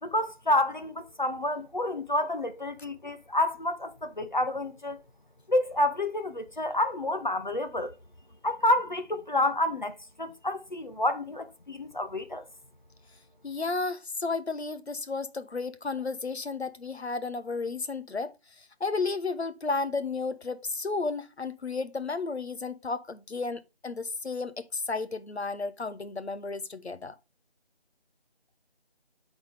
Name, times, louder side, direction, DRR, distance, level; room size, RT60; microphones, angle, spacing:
voice 1, 0.0-5.0 5.5-7.9 8.4-12.4, left 1 dB, 50° left, 0.8 m, -29 dB
voice 2, 13.4-27.1, left 4 dB, 90° left, 1.1 m, -33 dB
11.0 x 4.0 x 3.4 m
figure-of-eight pair, 175°, 31 cm